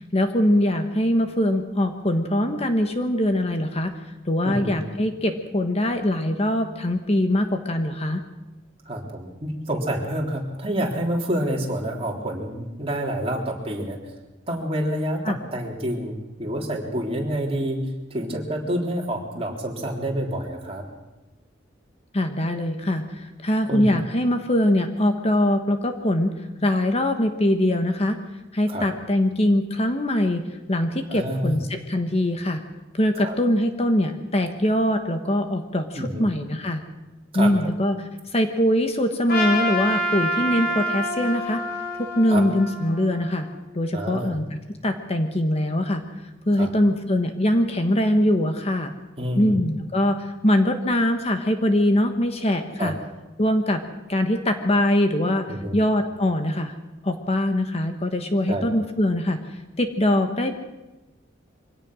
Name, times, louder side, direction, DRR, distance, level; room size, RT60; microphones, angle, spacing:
voice 1, 0.1-3.9 4.3-8.2 15.2-15.4 22.1-26.3 26.6-28.2 28.5-32.6 32.9-36.8 37.3-38.0 38.3-41.6 41.9-43.5 43.7-46.0 46.5-48.9 49.4-53.0 53.4-53.8 54.1-56.7 57.0-60.6, left 1 dB, 35° left, 6 dB, 1.3 m, -22 dB
voice 2, 8.9-14.0 14.5-17.8 18.1-20.8 23.7-23.9 28.7-28.8 31.1-31.6 33.2-33.4 36.0-36.2 37.3-37.5 42.3-42.4 43.9-44.4 46.6-46.7 49.2-49.6 52.8-52.9 55.5-55.8 58.5-58.8, right 1 dB, 30° right, 0 dB, 3.6 m, -28 dB
Trumpet, 39.3-43.6, equal, 55° left, 3.6 m, -27 dB
24.0 x 17.5 x 6.3 m, 1.1 s
head